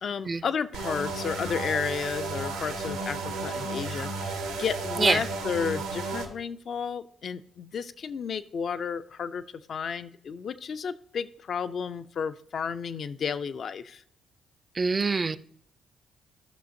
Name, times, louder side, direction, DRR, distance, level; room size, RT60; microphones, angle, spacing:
voice 1, 0.0-9.4 9.7-14.0, left 6 dB, 55° left, 12 dB, 0.4 m, -32 dB
sound 1, 0.7-6.3, right 3 dB, 90° right, 1.1 m, -33 dB
voice 2, 14.7-15.4, right 4 dB, 40° right, 15 dB, 0.4 m, -24 dB
13.5 x 6.2 x 2.6 m, 0.63 s
hypercardioid pair, 45°, 0 cm